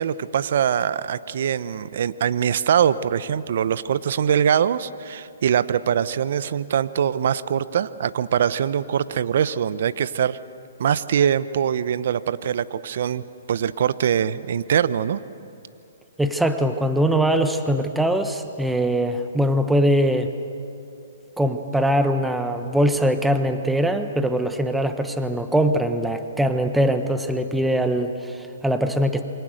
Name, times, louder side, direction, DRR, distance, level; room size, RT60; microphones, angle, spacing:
voice 1, 0.0-10.4 10.8-15.2, right 8 dB, 60° right, 15 dB, 0.8 m, -23 dB
voice 2, 16.2-20.3 21.4-29.2, right 1 dB, 5° right, 7 dB, 1.2 m, -22 dB
28.0 x 24.0 x 6.5 m, 2.6 s
hypercardioid pair, 135°, 0 cm